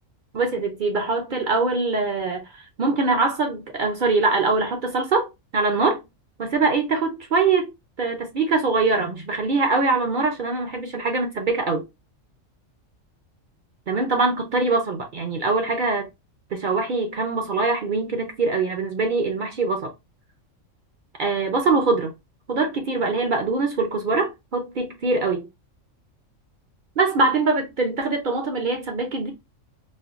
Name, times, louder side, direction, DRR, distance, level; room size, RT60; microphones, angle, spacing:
voice 1, 0.3-2.5 2.8-6.0 6.4-7.7 8.0-11.8 13.9-16.1 16.5-19.9 21.2-22.1 22.5-25.5 27.0-29.3, right 3 dB, 55° right, 0.6 m, -23 dB
4.3 x 2.2 x 2.4 m
omnidirectional pair, 1.4 m